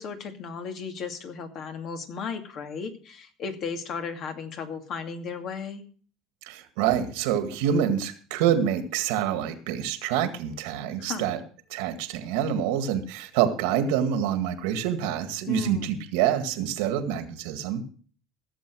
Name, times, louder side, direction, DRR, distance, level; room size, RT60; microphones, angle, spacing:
voice 1, 0.0-5.8 11.0-11.3 15.5-16.1, left 5 dB, 55° left, 5 dB, 2.4 m, -35 dB
voice 2, 6.4-11.4 11.7-17.8, right 9 dB, 85° right, 8 dB, 1.9 m, -26 dB
16.0 x 7.3 x 6.2 m, 0.43 s
supercardioid pair, 105°, 0 cm